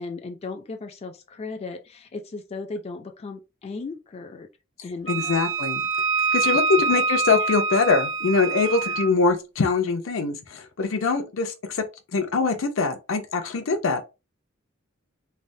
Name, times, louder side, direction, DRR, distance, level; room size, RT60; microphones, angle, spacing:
voice 1, 0.0-4.5 4.8-5.4 6.1-7.0 7.3-7.6 8.6-9.0, left 3 dB, 30° left, 0.3 m, -37 dB
voice 2, 5.1-5.8 6.3-11.8 12.1-14.0, left 4 dB, 80° left, 0.6 m, -23 dB
Wind instrument woodwind instrument, 5.1-9.1, right 4 dB, 70° right, 0.7 m, -25 dB
3.2 x 2.1 x 2.6 m
head